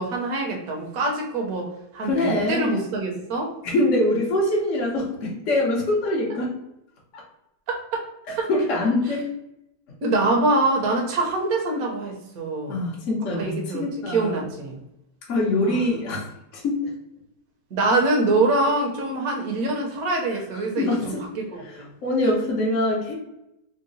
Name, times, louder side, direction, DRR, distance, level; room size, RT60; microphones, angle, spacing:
voice 1, 0.0-1.7 1.9-3.5 7.7-8.0 8.4-8.5 10.0-12.8 13.4-14.8 15.6-15.8 17.7-21.9, right 2 dB, 55° right, 0 dB, 1.1 m, -24 dB
voice 2, 2.0-2.7 3.6-6.5 7.1-7.2 8.3-9.3 12.7-14.5 15.3-16.9 20.8-21.2 21.6-23.1, left 1 dB, 50° left, -4 dB, 0.9 m, -24 dB
3.9 x 2.1 x 3.9 m, 0.85 s
omnidirectional pair, 2.2 m